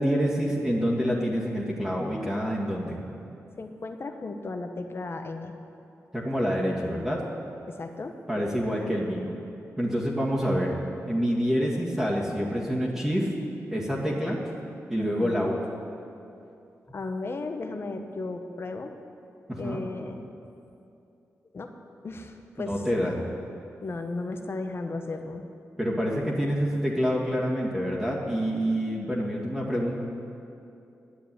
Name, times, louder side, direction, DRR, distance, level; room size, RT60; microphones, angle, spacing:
voice 1, 0.0-3.0 6.1-7.2 8.3-9.3 9.8-10.7 11.1-13.3 13.7-14.4 14.9-15.5 19.5-19.8 22.6-23.1 25.8-29.9, equal, 5° right, -7 dB, 1.9 m, -27 dB
voice 2, 3.6-5.5 7.7-8.1 15.0-15.5 16.9-18.9 19.6-20.2 21.5-21.7 22.0-22.8 23.8-25.4, left 3 dB, 45° left, 6 dB, 1.0 m, -35 dB
10.0 x 8.0 x 9.3 m, 2.7 s
cardioid pair, 85°, 6 cm